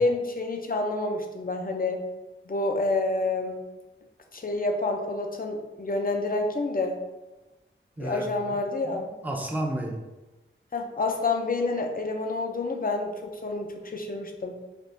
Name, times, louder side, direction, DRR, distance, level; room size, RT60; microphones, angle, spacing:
voice 1, 0.0-2.0 2.5-3.6 4.3-7.0 8.0-9.1 10.7-14.6, left 2 dB, 45° left, 3 dB, 0.5 m, -28 dB
voice 2, 8.0-10.1, right 1 dB, 10° right, 1 dB, 0.5 m, -33 dB
3.4 x 2.4 x 2.6 m, 1.1 s
wide cardioid pair, 45°, 21 cm